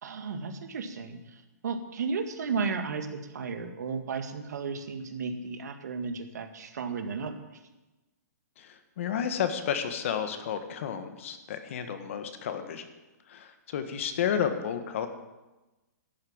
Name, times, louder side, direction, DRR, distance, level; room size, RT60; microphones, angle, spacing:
voice 1, 0.0-7.3, right 5 dB, 70° right, 7 dB, 1.8 m, -34 dB
voice 2, 8.6-12.9 13.3-15.1, left 8 dB, 45° left, 8 dB, 1.5 m, -31 dB
11.5 x 8.6 x 8.8 m, 1.1 s
hypercardioid pair, 165°, 9 cm